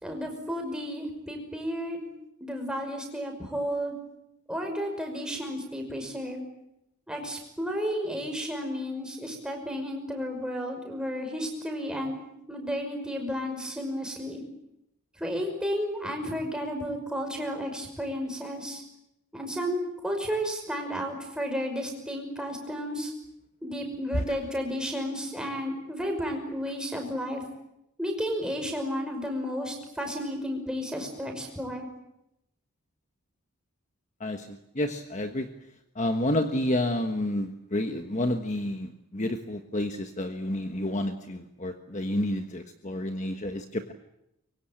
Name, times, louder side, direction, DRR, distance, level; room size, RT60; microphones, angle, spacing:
voice 1, 0.0-2.1 2.4-3.9 4.5-6.4 7.1-12.2 12.5-14.4 15.2-18.8 19.3-23.1 23.6-27.4 28.0-31.9, equal, 5° right, 2 dB, 5.6 m, -32 dB
voice 2, 34.7-35.5 36.0-43.9, left 1 dB, 35° left, 6 dB, 1.3 m, -29 dB
24.5 x 23.5 x 8.8 m, 0.85 s
head